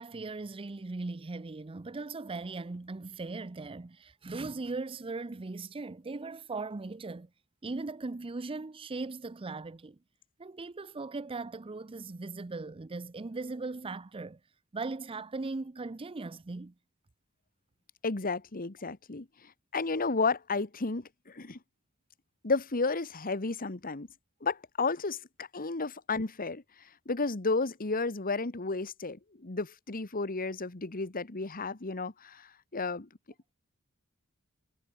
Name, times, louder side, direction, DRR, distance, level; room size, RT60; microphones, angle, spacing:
voice 1, 0.0-7.3 7.6-10.0 10.4-14.4 14.7-16.7, right 3 dB, 25° right, 0.5 m, -39 dB
voice 2, 18.0-21.6 22.4-24.1 24.4-26.6 27.0-33.1, left 3 dB, 40° left, 1.4 m, -32 dB
head